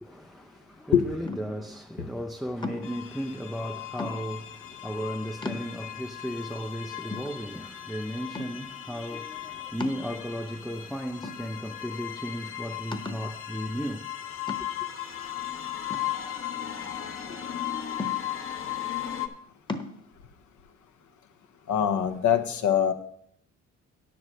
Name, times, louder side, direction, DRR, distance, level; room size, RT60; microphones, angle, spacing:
voice 1, 0.0-14.1, equal, ahead, 0.4 m, -35 dB
sound 1, 1.2-1.7 2.6-3.1 4.0-4.5 5.0-5.1 5.4-6.1 6.6-6.7 7.1-7.9 8.3-8.8 9.8-10.5 11.2-11.9 12.2-12.3 12.9-13.3 14.5-15.0 15.9-16.8 18.0-18.6 19.7-20.0, left 3 dB, 15° left, 1.0 m, -38 dB
sound 2, 2.8-19.3, left 11 dB, 45° left, 0.9 m, -37 dB
voice 2, 21.7-22.9, left 9 dB, 75° left, 0.9 m, -23 dB
9.9 x 4.8 x 7.6 m
cardioid pair, 90°, 30 cm